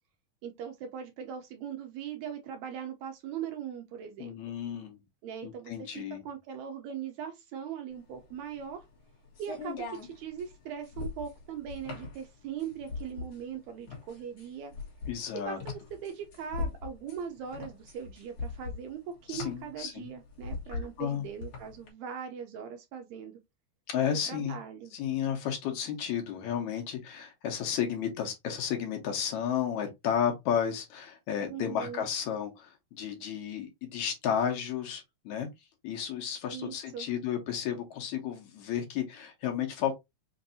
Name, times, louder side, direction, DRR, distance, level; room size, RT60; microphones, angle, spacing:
voice 1, 0.4-4.3 5.2-8.8 9.4-14.7 15.3-23.3 24.3-24.9 31.5-32.0 36.5-37.1, right 8 dB, 75° right, 1.8 m, -40 dB
voice 2, 4.2-5.0 5.4-6.2 15.1-15.6 19.3-20.1 20.7-21.2 23.9-24.6 24.9-35.5 35.8-39.9, left 8 dB, 70° left, 2.2 m, -32 dB
sound 1, 8.0-21.9, left 4 dB, 55° left, 2.3 m, -40 dB
5.3 x 2.6 x 2.6 m
omnidirectional pair, 3.6 m